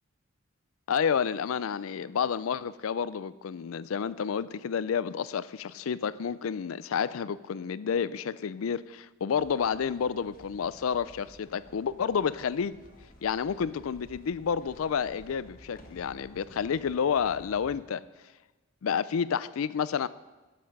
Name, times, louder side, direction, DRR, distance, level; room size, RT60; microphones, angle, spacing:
voice 1, 0.9-12.8 13.2-18.0 18.8-20.1, left 7 dB, 85° left, 17 dB, 0.4 m, -30 dB
sound 1, 9.4-17.8, equal, 40° left, 1.5 m, -54 dB
11.5 x 7.7 x 5.4 m, 1.2 s
head